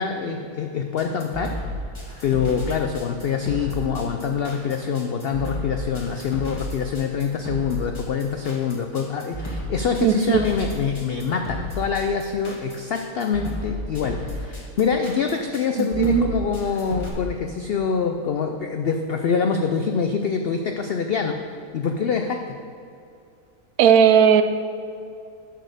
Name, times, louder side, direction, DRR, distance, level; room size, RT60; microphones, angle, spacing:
voice 1, 0.0-1.7 2.2-21.4 21.7-22.6, left 6 dB, 85° left, 5 dB, 0.5 m, -25 dB
sound 1, 1.0-17.1, equal, 20° left, 1.2 m, -33 dB
voice 2, 10.0-10.4 15.8-16.5 23.8-24.4, right 8 dB, 75° right, 10 dB, 1.0 m, -17 dB
10.5 x 4.2 x 6.6 m, 2.5 s
omnidirectional pair, 1.6 m